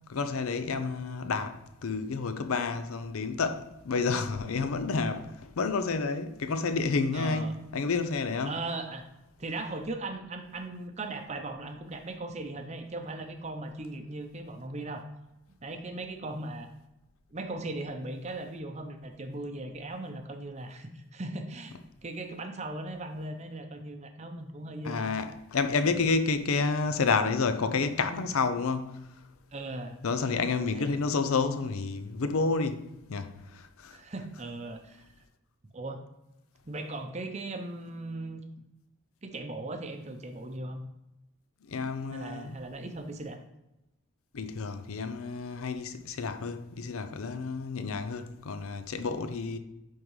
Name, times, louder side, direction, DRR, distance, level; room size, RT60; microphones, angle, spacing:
voice 1, 0.1-8.5 24.8-28.9 30.0-34.0 41.6-42.6 44.3-49.6, left 4 dB, 75° left, 0.5 m, -30 dB
voice 2, 7.1-7.6 8.5-9.0 9.4-15.0 15.6-16.7 17.3-21.8 22.0-25.1 25.8-26.0 29.5-30.0 30.7-31.0 33.9-35.1 35.7-36.0 36.7-38.4 39.2-40.8 42.1-43.4, right 2 dB, 30° right, 0.6 m, -38 dB
10.0 x 3.7 x 3.2 m
head